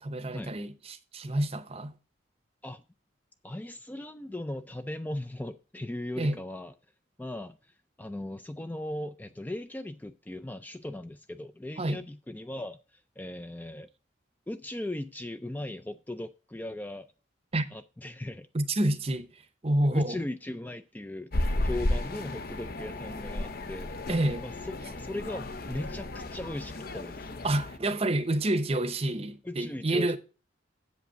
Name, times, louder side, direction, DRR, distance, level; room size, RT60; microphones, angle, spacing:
voice 1, 0.0-1.9 6.2-6.4 11.8-12.0 17.5-17.7 18.5-19.3 19.6-20.2 24.1-24.4 27.4-30.2, right 1 dB, 30° right, 0.7 m, -28 dB
voice 2, 3.4-6.7 7.2-13.9 14.5-17.1 17.7-18.5 19.9-24.0 24.4-27.3 29.4-30.2, left 1 dB, 10° left, 0.3 m, -38 dB
sound 1, 21.3-27.8, left 1 dB, 50° left, 0.7 m, -33 dB
7.8 x 5.2 x 6.7 m
head